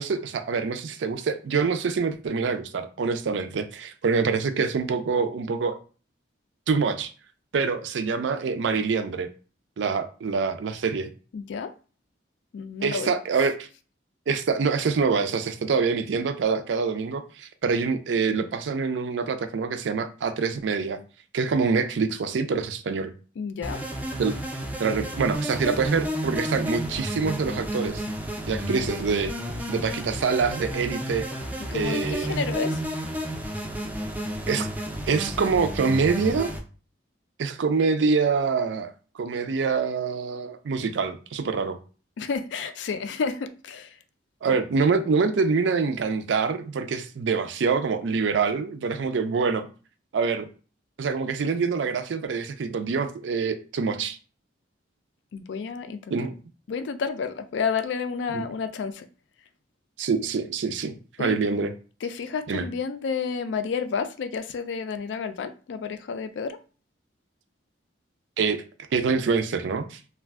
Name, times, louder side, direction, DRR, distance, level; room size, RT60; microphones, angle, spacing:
voice 1, 0.0-5.8 6.7-7.1 7.5-9.3 9.8-11.1 12.8-13.7 14.3-21.0 21.3-23.1 24.2-24.3 24.8-28.0 28.5-29.3 29.7-31.3 31.7-32.4 34.5-34.7 35.1-36.5 37.4-41.8 44.4-49.7 50.1-50.5 51.0-54.2 56.1-56.3 58.3-58.4 60.0-61.7 62.5-62.7 68.4-70.0, right 5 dB, 80° right, 0.4 m, -25 dB
voice 2, 11.3-11.7 12.5-13.1 23.4-23.8 28.5-28.7 31.7-32.8 42.2-43.9 44.5-44.6 55.3-56.2 56.7-59.1 61.2-61.4 62.0-66.6, left 5 dB, 75° left, 0.3 m, -30 dB
sound 1, 23.6-36.6, right 1 dB, 10° right, 0.3 m, -31 dB
2.4 x 2.2 x 3.4 m
head